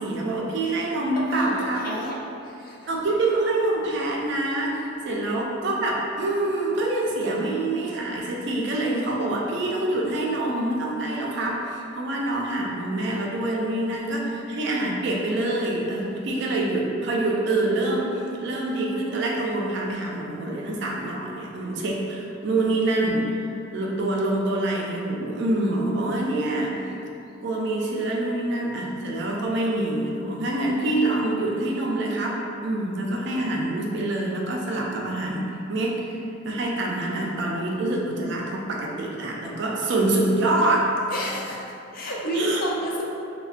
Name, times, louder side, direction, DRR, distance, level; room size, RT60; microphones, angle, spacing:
voice 1, 0.0-2.0 2.9-23.3 23.7-26.9 27.4-41.0 42.3-42.6, right 2 dB, 60° right, -2 dB, 0.4 m, -26 dB
voice 2, 1.2-2.1 2.4-2.7 5.1-5.2 14.0-14.4 41.1-41.6 41.9-43.0, equal, 45° left, -4 dB, 0.4 m, -30 dB
3.3 x 2.1 x 2.3 m, 2.7 s
head